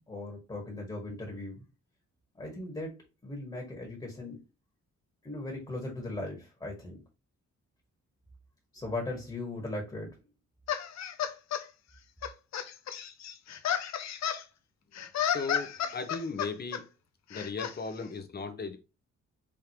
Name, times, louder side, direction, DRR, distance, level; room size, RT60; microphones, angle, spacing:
voice 1, 0.0-1.6 2.4-2.9 3.2-4.4 5.2-7.0 8.7-10.1, left 2 dB, 15° left, 1.6 m, -38 dB
sound 1, 10.7-11.6 12.2-14.4 15.0-16.8 17.3-17.7, left 9 dB, 60° left, 0.7 m, -32 dB
voice 2, 15.2-16.9 17.3-18.8, left 4 dB, 30° left, 0.9 m, -37 dB
5.0 x 3.6 x 2.9 m
wide cardioid pair, 155°, 30 cm